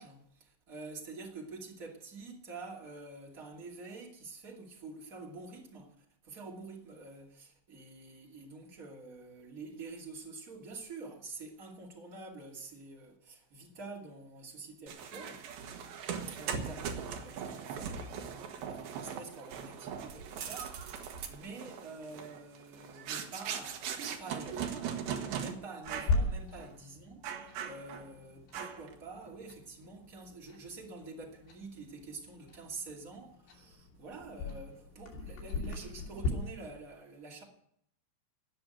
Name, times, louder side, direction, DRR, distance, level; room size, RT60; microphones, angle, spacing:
voice 1, 0.0-15.4 16.3-37.4, right 3 dB, 25° right, 2.1 m, -47 dB
sound 1, 14.9-25.5 25.8-26.2 26.6-26.7 27.2-28.1 28.5-28.9, right 7 dB, 65° right, 2.9 m, -40 dB
Clock, 25.9-36.3, left 3 dB, 85° left, 5.2 m, -39 dB
18.0 x 6.3 x 9.0 m
omnidirectional pair, 5.2 m